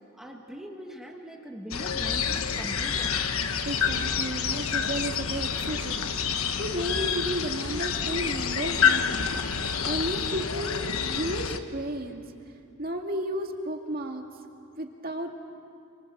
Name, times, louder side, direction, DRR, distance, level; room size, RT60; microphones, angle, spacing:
voice 1, 0.1-3.1, equal, ahead, 0 dB, 1.7 m, -41 dB
sound 1, 1.7-11.6, left 6 dB, 85° left, 1.2 m, -28 dB
voice 2, 3.6-9.3 9.9-12.2 12.8-14.2 14.8-15.3, right 1 dB, 45° right, 3 dB, 2.3 m, -33 dB
30.0 x 24.5 x 7.5 m, 2.5 s
head